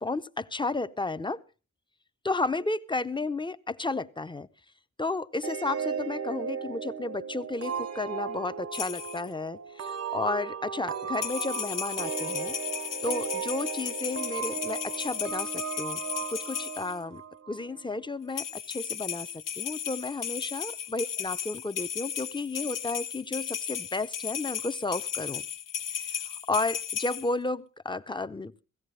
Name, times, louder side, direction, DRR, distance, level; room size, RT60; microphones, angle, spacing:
voice 1, 0.0-1.4 2.2-4.5 5.0-12.6 13.0-16.0 16.3-17.2 17.5-25.4 25.9-26.2 26.5-28.6, left 3 dB, 15° left, 0.7 m, -32 dB
sound 1, 5.4-17.8, right 7 dB, 50° right, 0.8 m, -36 dB
sound 2, 8.7-9.3 11.1-17.0 18.3-27.3, left 8 dB, 80° left, 0.9 m, -35 dB
16.5 x 16.5 x 3.3 m
wide cardioid pair, 105°, 32 cm